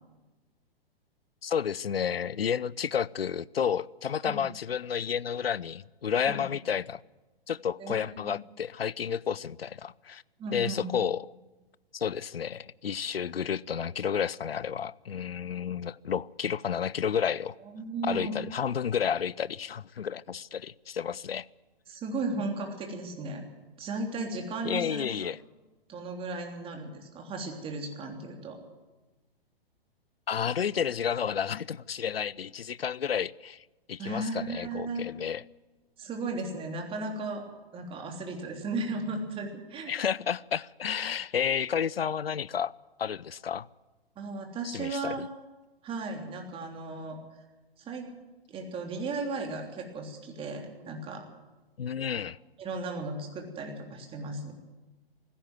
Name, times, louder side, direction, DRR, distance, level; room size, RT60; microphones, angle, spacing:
voice 1, 1.4-7.0 7.5-10.2 10.5-11.3 11.9-17.6 18.1-21.5 24.6-25.4 30.3-33.6 33.9-35.4 39.9-42.7 43.0-43.7 44.6-45.3 51.8-52.4, left 8 dB, 75° left, 22 dB, 0.6 m, -31 dB
voice 2, 7.8-8.3 10.4-11.0 17.6-18.4 21.9-23.4 23.8-25.3 25.9-28.6 34.0-35.0 36.0-37.5 37.7-39.9 44.1-45.3 45.8-47.2 47.8-48.1 48.5-51.3 52.6-54.5, right 3 dB, 20° right, 2 dB, 3.3 m, -35 dB
19.0 x 16.0 x 9.4 m, 1.2 s
figure-of-eight pair, 120°, 30 cm